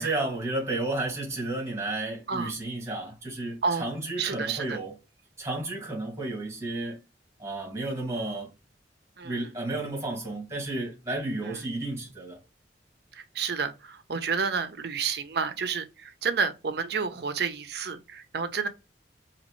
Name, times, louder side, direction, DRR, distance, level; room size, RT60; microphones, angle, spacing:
voice 1, 0.0-5.0 5.4-7.0 7.4-8.5 9.2-12.4, right 2 dB, 15° right, 1.6 m, -32 dB
voice 2, 4.2-4.8 9.2-9.4 11.4-11.6 13.2-18.7, right 5 dB, 60° right, 0.6 m, -30 dB
4.1 x 2.9 x 3.0 m
head